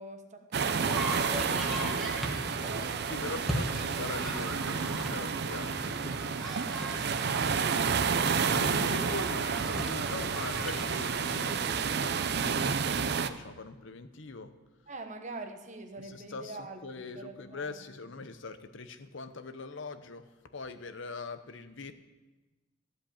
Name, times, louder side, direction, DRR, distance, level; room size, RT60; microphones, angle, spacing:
voice 1, 0.0-2.0 3.4-3.5 14.9-17.8, right 2 dB, 35° right, 5 dB, 1.1 m, -45 dB
sound 1, 0.5-13.3, right 6 dB, 50° right, 0.5 m, -30 dB
sound 2, 0.8-11.5, equal, ahead, 1.4 m, -39 dB
voice 2, 1.0-1.7 3.0-6.6 8.4-14.5 16.0-21.9, left 3 dB, 65° left, 10 dB, 0.8 m, -42 dB
14.5 x 5.2 x 8.6 m, 1.2 s
head